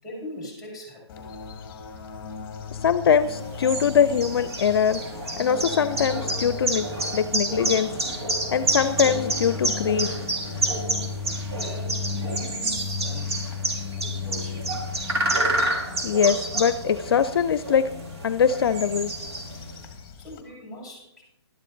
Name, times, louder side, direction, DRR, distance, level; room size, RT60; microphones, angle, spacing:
voice 1, 0.0-1.3 11.6-13.3 14.2-14.8 20.1-21.2, equal, ahead, -3 dB, 5.6 m, -41 dB
sound 1, 1.1-20.4, left 5 dB, 15° left, 1.7 m, -36 dB
voice 2, 2.8-5.0 5.4-7.9 8.5-10.1 16.0-17.9 18.2-19.1, left 7 dB, 60° left, 14 dB, 0.6 m, -22 dB
sound 2, 3.2-19.8, right 2 dB, 65° right, 3.4 m, -29 dB
12.5 x 11.5 x 3.9 m, 0.84 s
hypercardioid pair, 155°, 14 cm